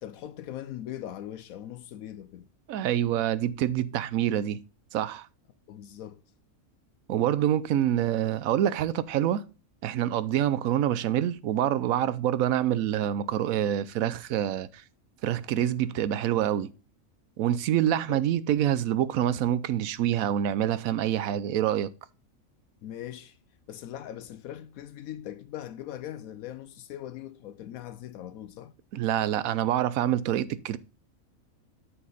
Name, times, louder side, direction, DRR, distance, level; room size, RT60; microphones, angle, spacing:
voice 1, 0.0-2.5 5.7-6.2 18.1-18.3 22.8-23.4 23.7-28.7, left 11 dB, 80° left, 1.0 m, -40 dB
voice 2, 2.7-4.6 4.9-5.3 7.1-9.4 9.8-14.8 15.2-16.7 17.4-21.9 28.9-30.8, right 11 dB, 90° right, 1.0 m, -26 dB
7.8 x 6.4 x 3.9 m
omnidirectional pair, 1.4 m